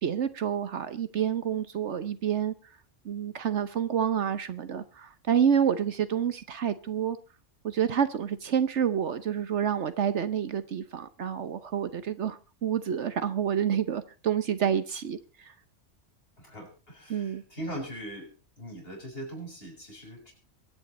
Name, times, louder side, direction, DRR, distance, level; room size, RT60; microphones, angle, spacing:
voice 1, 0.0-2.5 3.0-7.2 7.6-15.5 17.1-17.4, right 8 dB, 70° right, 1.2 m, -28 dB
voice 2, 16.4-18.3 18.6-20.3, right 1 dB, 50° left, 6.6 m, -40 dB
23.0 x 9.6 x 4.3 m
omnidirectional pair, 1.2 m